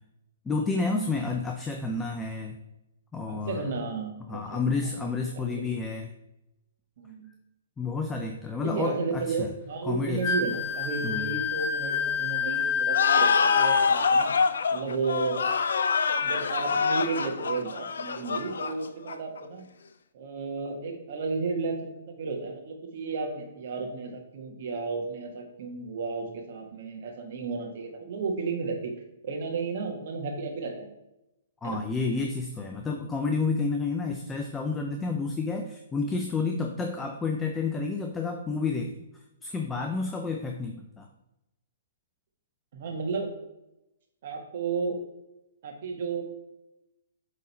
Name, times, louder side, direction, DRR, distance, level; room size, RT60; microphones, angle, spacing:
voice 1, 0.5-2.6 3.1-3.7 4.3-6.1 7.8-9.5 9.8-10.2 11.0-11.3 31.6-38.9 39.4-41.1, left 4 dB, 10° left, 3 dB, 0.5 m, -30 dB
voice 2, 3.3-4.8 5.3-5.6 7.0-7.3 8.6-14.3 14.7-15.4 16.2-19.7 20.1-28.9 29.2-30.9 31.6-31.8 42.7-43.3 44.2-45.0 45.6-46.2, right 4 dB, 55° right, 2 dB, 1.6 m, -33 dB
Wind instrument woodwind instrument, 10.2-13.9, left 7 dB, 40° left, 0.8 m, -28 dB
sound 1, 12.9-19.4, left 5 dB, 80° left, 0.5 m, -25 dB
8.2 x 3.8 x 4.2 m, 0.92 s
hypercardioid pair, 150°, 0 cm